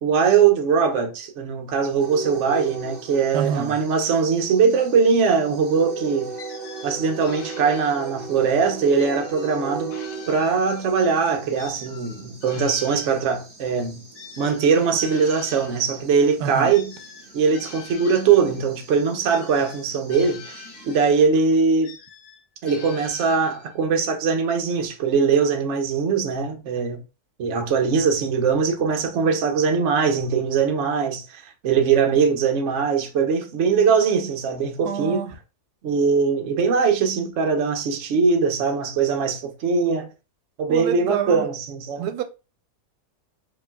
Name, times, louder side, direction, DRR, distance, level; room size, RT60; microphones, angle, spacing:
voice 1, 0.0-6.3 6.8-9.9 10.3-14.0 14.4-16.9 17.3-21.9 22.6-27.0 27.4-35.3 35.8-40.1 40.6-42.1, right 5 dB, 60° right, 1.0 m, -21 dB
sound 1, 2.0-21.2, right 4 dB, 35° right, 1.1 m, -39 dB
voice 2, 3.3-3.8 16.4-16.7 34.8-35.3 40.7-41.5 42.0-42.2, right 9 dB, 85° right, 1.1 m, -27 dB
sound 2, 6.4-8.4 9.0-11.0 11.6-15.9 16.7-18.7 19.3-21.3 21.8-23.8, left 6 dB, 80° left, 1.3 m, -44 dB
5.0 x 3.2 x 2.2 m
omnidirectional pair, 1.6 m